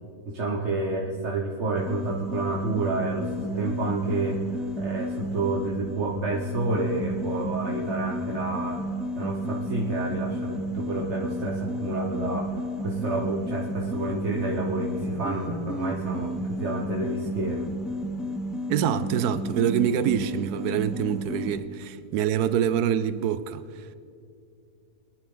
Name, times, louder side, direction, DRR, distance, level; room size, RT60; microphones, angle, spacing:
voice 1, 0.2-8.8 9.2-17.7, right 2 dB, 50° right, 1.5 m, -29 dB
sound 1, 1.7-21.6, equal, ahead, 0.7 m, -32 dB
voice 2, 18.7-23.9, right 9 dB, 85° right, 1.2 m, -26 dB
23.5 x 11.0 x 3.9 m
omnidirectional pair, 1.6 m